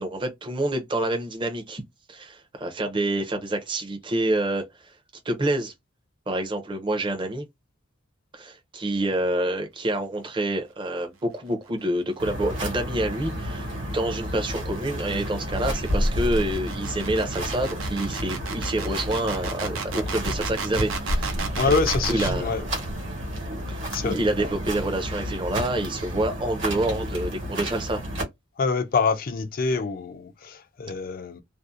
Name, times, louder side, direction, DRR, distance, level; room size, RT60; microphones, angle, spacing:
voice 1, 0.0-1.8 2.1-4.9 5.2-5.7 6.3-7.5 8.3-21.4 21.7-22.6 23.7-28.0, right 1 dB, 25° right, 0.6 m, -27 dB
sound 1, 12.2-28.2, equal, 70° right, 1.2 m, -30 dB
sound 2, 13.1-22.4, right 5 dB, 85° right, 0.7 m, -34 dB
voice 2, 21.6-22.7 23.9-24.2 28.6-31.4, left 4 dB, 45° left, 0.4 m, -26 dB
2.6 x 2.0 x 2.3 m
head